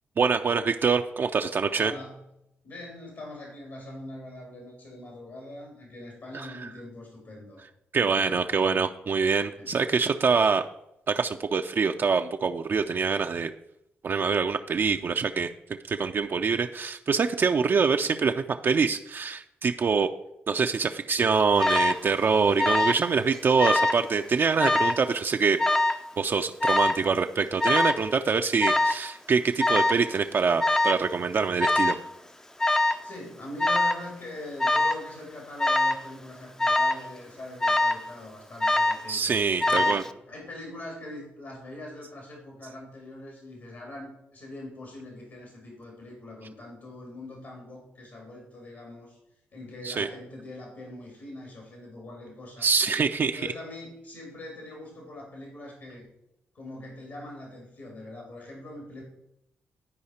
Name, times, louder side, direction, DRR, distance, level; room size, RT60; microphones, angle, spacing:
voice 1, 0.2-1.9 6.3-6.7 7.9-10.6 11.1-13.5 14.0-15.5 15.9-20.1 20.5-25.6 26.2-32.0 39.1-40.0 49.8-50.1 52.6-53.4, right 5 dB, 50° right, 4 dB, 0.5 m, -25 dB
voice 2, 1.8-2.3 2.6-7.6 8.0-8.8 9.6-9.8 33.0-39.2 39.6-49.2 49.5-52.7 53.2-56.1 56.5-59.0, left 1 dB, 65° left, -1 dB, 2.5 m, -42 dB
Alarm, 21.6-22.0 22.6-23.1 23.3-24.0 24.6-25.0 25.6-26.0 26.6-27.0 27.6-28.0 28.6-29.0 29.6-30.0 30.6-31.0 31.6-32.0 32.6-33.1 33.6-34.0 34.6-35.0 35.6-36.0 36.6-37.0 37.6-38.1 38.6-39.1 39.6-40.1, left 2 dB, 10° left, 0.5 m, -23 dB
11.0 x 4.8 x 4.3 m, 0.83 s
supercardioid pair, 55°, 5 cm